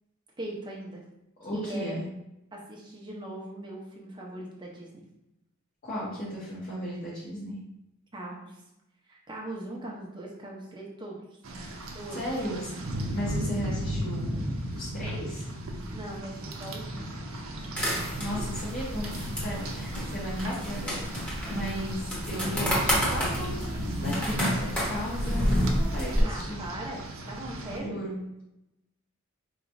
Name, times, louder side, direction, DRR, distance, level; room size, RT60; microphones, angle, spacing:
voice 1, 0.4-1.0 1.5-2.0 2.5-5.0 8.1-8.6 9.1-11.2 11.9-12.3 15.9-17.1 26.2-28.0, right 1 dB, 20° right, -3 dB, 0.8 m, -40 dB
voice 2, 1.4-2.0 5.8-7.6 12.1-12.7 13.1-15.5 18.2-26.6 27.7-28.2, equal, 45° left, -8 dB, 1.0 m, -35 dB
Rain, 11.4-27.8, right 1 dB, 75° right, 0.6 m, -36 dB
sound 1, 17.8-26.2, equal, 5° left, 1.1 m, -30 dB
4.6 x 3.0 x 2.6 m, 0.89 s
head